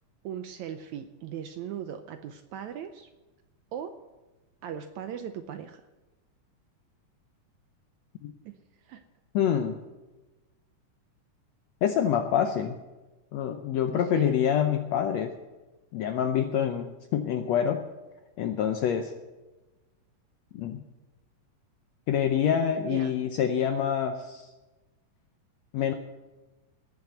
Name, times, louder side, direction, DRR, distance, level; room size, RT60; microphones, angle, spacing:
voice 1, 0.2-3.1 3.7-4.0 4.6-5.8 8.5-8.6 8.8-9.0 13.9-14.4 22.8-23.1, right 9 dB, 75° right, 8 dB, 1.8 m, -38 dB
voice 2, 9.3-9.8 11.8-12.8 13.3-15.3 15.9-17.8 18.4-19.1 20.5-20.8 22.1-24.5 25.7-25.9, left 9 dB, 75° left, 6 dB, 1.6 m, -26 dB
18.5 x 7.2 x 8.0 m, 1.1 s
omnidirectional pair, 3.9 m